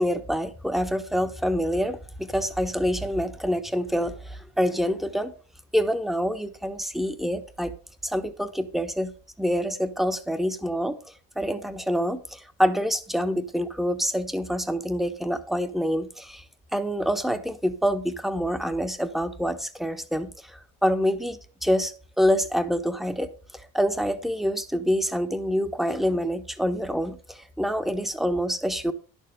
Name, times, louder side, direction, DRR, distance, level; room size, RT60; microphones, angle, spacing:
voice 1, 0.0-5.3 5.7-7.7 8.0-9.1 9.4-11.0 11.3-16.4 16.7-28.9, equal, ahead, 9 dB, 1.2 m, -26 dB
11.0 x 7.2 x 5.2 m, 0.36 s
supercardioid pair, 95°, 31 cm